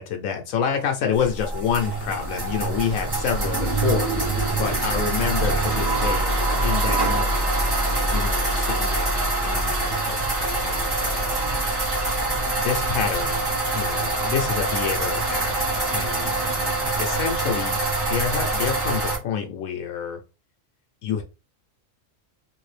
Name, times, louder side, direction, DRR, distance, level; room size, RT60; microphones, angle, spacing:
voice 1, 0.0-7.5 8.1-11.4 12.6-13.4 13.7-15.7 15.9-16.3 17.0-20.2 21.0-21.2, left 7 dB, 85° left, 4 dB, 1.0 m, -28 dB
sound 1, 1.1-19.2, right 2 dB, 20° right, 0.9 m, -24 dB
3.2 x 2.6 x 3.2 m, 0.29 s
omnidirectional pair, 1.4 m